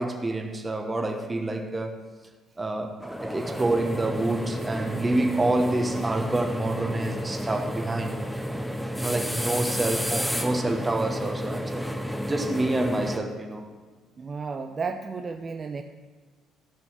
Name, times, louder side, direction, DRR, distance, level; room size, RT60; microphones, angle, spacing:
voice 1, 0.0-2.0 2.6-8.3 8.9-11.9 12.2-13.7, right 2 dB, 20° right, 1.2 m, -27 dB
sound 1, 3.0-13.2, equal, ahead, 1.0 m, -31 dB
voice 2, 14.2-15.8, right 5 dB, 40° right, 0.6 m, -33 dB
14.0 x 6.1 x 6.2 m
hypercardioid pair, 60°, 0 cm